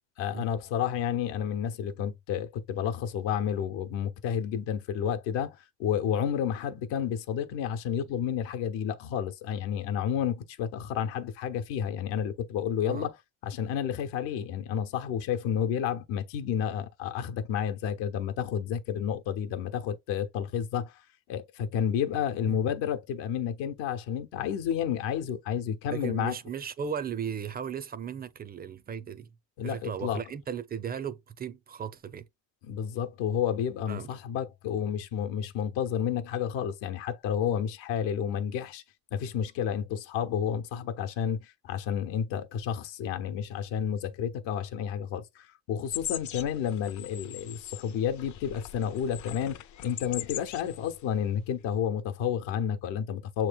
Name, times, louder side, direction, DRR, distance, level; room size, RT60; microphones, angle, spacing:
voice 1, 0.2-13.1 13.4-20.9 21.3-26.3 29.6-30.2 32.6-38.8 39.1-53.5, left 8 dB, 85° left, 0.9 m, -31 dB
voice 2, 25.9-29.3 29.6-32.2 33.9-34.1, right 7 dB, 25° right, 0.4 m, -36 dB
sound 1, 45.9-51.1 51.3-51.5, left 12 dB, 45° left, 0.4 m, -41 dB
6.8 x 3.1 x 2.3 m
cardioid pair, 110°, 43 cm